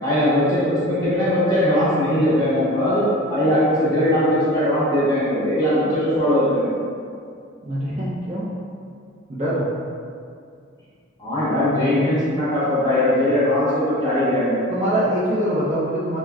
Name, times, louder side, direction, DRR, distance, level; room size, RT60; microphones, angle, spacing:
voice 1, 0.0-6.7 11.2-14.6, left 1 dB, 20° left, -11 dB, 1.0 m, -20 dB
voice 2, 7.6-8.5 9.3-9.6 14.7-16.2, equal, 35° right, -10 dB, 0.5 m, -23 dB
4.7 x 2.1 x 2.3 m, 2.3 s
head